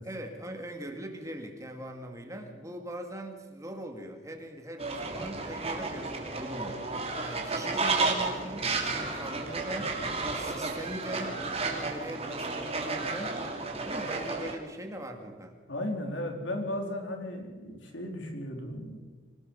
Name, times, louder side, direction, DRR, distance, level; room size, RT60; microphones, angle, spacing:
voice 1, 0.0-6.8 7.2-10.0 10.3-13.4 13.8-15.6, right 1 dB, 15° right, 4 dB, 2.4 m, -41 dB
Fowl, 4.8-14.6, right 3 dB, 35° right, 3.0 m, -32 dB
voice 2, 15.7-19.0, left 1 dB, 85° left, 3 dB, 4.0 m, -35 dB
26.0 x 19.0 x 5.5 m, 1.4 s
head